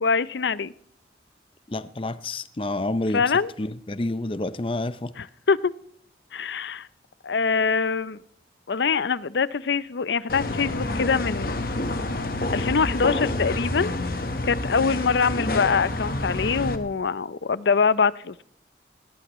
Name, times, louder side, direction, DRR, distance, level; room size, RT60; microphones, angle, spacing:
voice 1, 0.0-0.7 3.1-3.5 5.2-5.7 6.3-6.9 7.2-8.2 8.7-11.6 12.5-13.9 14.5-18.4, left 5 dB, 80° left, 18 dB, 0.6 m, -24 dB
voice 2, 1.7-3.2 3.6-5.1 15.3-15.6, left 2 dB, 30° left, 14 dB, 0.6 m, -29 dB
sound 1, 10.3-16.8, left 2 dB, 55° left, 1.3 m, -28 dB
18.0 x 17.5 x 3.1 m, 0.63 s
head